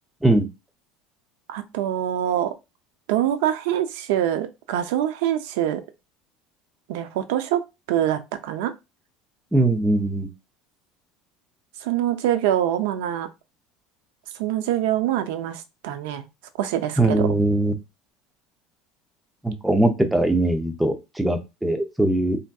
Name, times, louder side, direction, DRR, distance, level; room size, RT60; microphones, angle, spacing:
voice 1, 1.5-2.6 3.1-5.8 6.9-7.6 7.9-8.7 11.8-13.3 14.4-16.2 16.6-17.3, right 11 dB, 85° right, 0.4 m, -24 dB
voice 2, 9.5-10.3 17.0-17.7 19.4-22.4, right 2 dB, 5° right, 0.5 m, -21 dB
3.4 x 2.6 x 2.3 m
cardioid pair, 155°, 0 cm